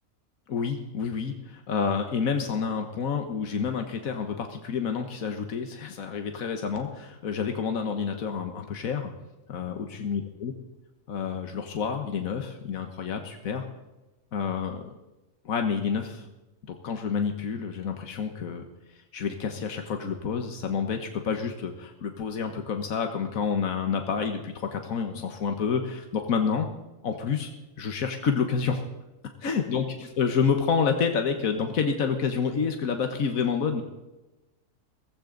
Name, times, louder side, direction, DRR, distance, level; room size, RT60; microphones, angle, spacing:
voice 1, 0.5-9.1 9.5-10.5 11.1-13.7 14.3-15.0 15.4-16.3 16.7-18.6 19.1-26.7 27.0-27.5 27.8-28.8 29.4-33.8, left 6 dB, 85° left, 5 dB, 1.6 m, -29 dB
16.5 x 15.5 x 3.9 m, 1.0 s
omnidirectional pair, 1.4 m